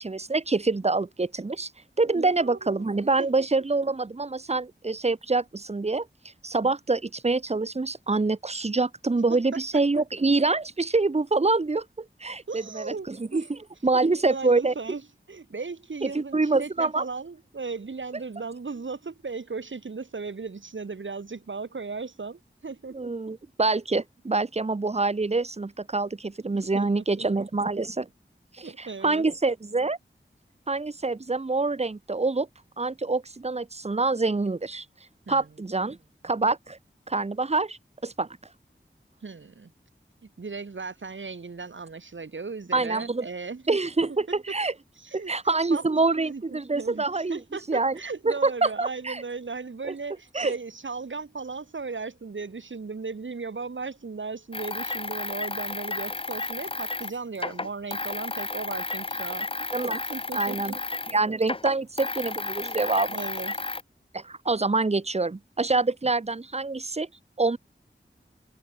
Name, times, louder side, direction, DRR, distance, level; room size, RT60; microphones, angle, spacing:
voice 1, 0.0-1.7 2.0-6.1 6.4-13.6 13.8-14.7 16.0-17.0 22.9-28.1 28.6-30.0 30.7-32.5 32.8-34.8 35.3-36.0 36.2-36.8 37.1-38.3 42.7-43.3 43.7-44.7 45.1-47.4 47.7-48.0 48.3-49.2 49.8-49.9 50.3-50.5 59.7-60.0 60.3-60.7 61.1-63.2 64.1-67.1 67.4-67.6, right 3 dB, 35° right, 0.7 m, -26 dB
voice 2, 2.1-2.8 3.2-3.3 9.3-9.6 12.5-13.5 13.9-15.0 15.3-23.1 26.5-27.4 28.6-29.3 35.3-35.7 39.2-39.7 40.4-43.8 45.0-45.3 45.7-45.8 46.2-59.5 59.9-60.8 63.1-63.6, right 4 dB, 75° right, 1.2 m, -36 dB
sound 1, 54.5-61.2 61.4-63.8, left 3 dB, 30° left, 0.6 m, -32 dB
wide cardioid pair, 45°, 20 cm